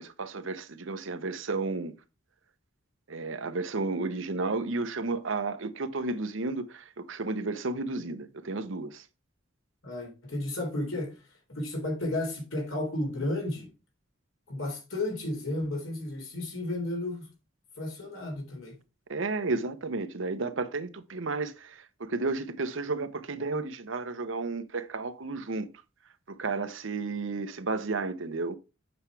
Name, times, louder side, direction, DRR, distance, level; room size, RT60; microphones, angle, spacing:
voice 1, 0.0-1.9 3.1-9.0 19.1-25.7 26.3-28.6, right 3 dB, 75° right, 0.8 m, -32 dB
voice 2, 9.8-11.2 11.6-13.7 14.5-17.3 17.8-18.8, left 1 dB, 85° left, 3.5 m, -33 dB
7.9 x 5.7 x 3.3 m
head